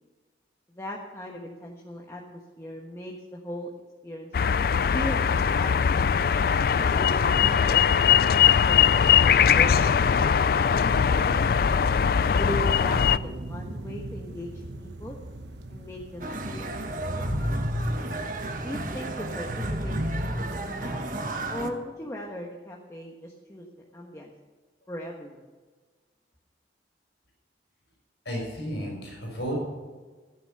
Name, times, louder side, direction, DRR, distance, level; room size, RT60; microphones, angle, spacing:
voice 1, 0.7-3.7 4.0-4.3 4.9-6.1 6.8-10.4 10.7-11.5 12.3-15.2 15.7-17.2 18.6-21.0 21.5-24.3 24.9-25.4, equal, 15° left, -1 dB, 1.3 m, -38 dB
sound 1, 4.3-13.2, left 7 dB, 55° left, 0.3 m, -21 dB
sound 2, 10.8-19.7, right 1 dB, 75° right, 1.0 m, -41 dB
sound 3, 16.2-21.7, right 1 dB, 50° right, 1.4 m, -31 dB
voice 2, 28.2-29.6, equal, 80° left, -1 dB, 6.1 m, -32 dB
15.5 x 10.0 x 6.8 m, 1.4 s
head